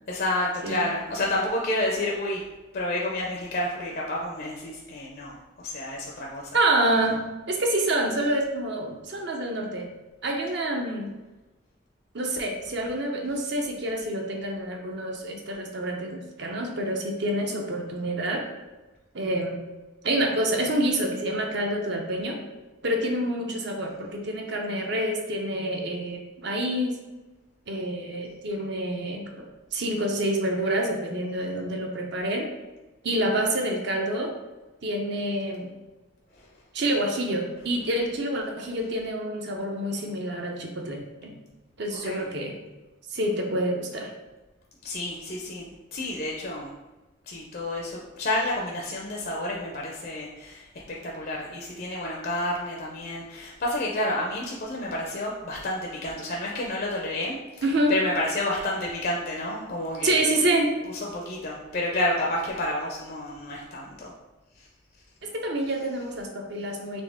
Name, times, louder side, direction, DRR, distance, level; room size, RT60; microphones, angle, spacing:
voice 1, 0.1-2.4 2.7-6.5 36.3-36.5 42.0-42.3 44.8-46.7 47.3-60.4 61.1-64.1 64.6-64.7, left 1 dB, 45° left, -2 dB, 0.5 m, -30 dB
voice 2, 6.5-9.9 10.2-11.1 12.1-18.4 19.1-19.6 20.0-22.4 22.8-27.0 27.7-32.5 33.0-34.3 34.8-35.7 36.7-41.3 41.8-42.5 43.1-44.1 57.6-57.9 60.0-60.7 65.2-67.0, right 1 dB, 55° right, 2 dB, 0.7 m, -27 dB
4.1 x 3.1 x 3.5 m, 1.1 s
head